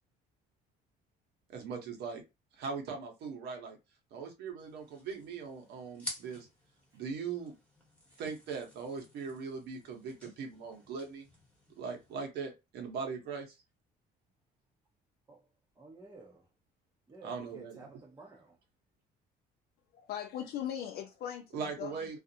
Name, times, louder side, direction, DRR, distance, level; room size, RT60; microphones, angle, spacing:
voice 1, 1.5-2.2 2.6-3.8 4.1-6.5 6.9-7.5 8.2-11.2 11.8-13.6 17.2-17.9 21.5-22.2, right 5 dB, 75° right, 0.9 m, -40 dB
sound 1, 4.6-12.2, left 1 dB, 5° left, 1.0 m, -50 dB
voice 2, 15.8-16.5 17.1-18.6, right 3 dB, 20° right, 0.6 m, -53 dB
voice 3, 19.9-22.2, left 10 dB, 65° left, 0.4 m, -40 dB
2.4 x 2.0 x 2.7 m
cardioid pair, 110°, 17 cm